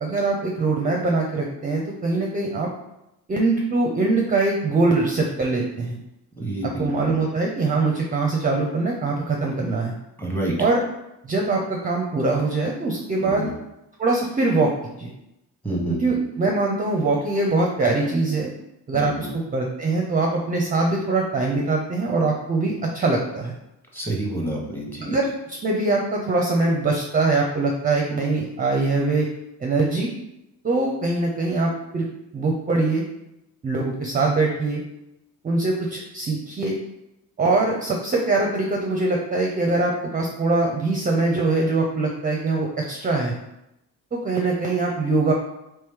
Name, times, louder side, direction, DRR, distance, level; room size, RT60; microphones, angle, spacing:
voice 1, 0.0-2.7 3.3-6.0 6.6-9.9 10.6-10.8 11.2-13.5 14.0-14.7 15.0-15.1 15.9-18.5 18.9-23.5 25.0-29.3 29.6-30.1 30.6-32.1 32.3-33.0 33.6-34.8 35.4-36.8 37.4-43.4 44.1-45.3, right 3 dB, 25° right, 0 dB, 0.5 m, -23 dB
voice 2, 6.3-7.1 10.2-10.5 13.2-13.5 15.6-16.0 18.9-19.3 23.9-25.1, right 1 dB, 5° left, -2 dB, 0.9 m, -28 dB
3.0 x 3.0 x 3.5 m, 0.86 s
cardioid pair, 100°, 37 cm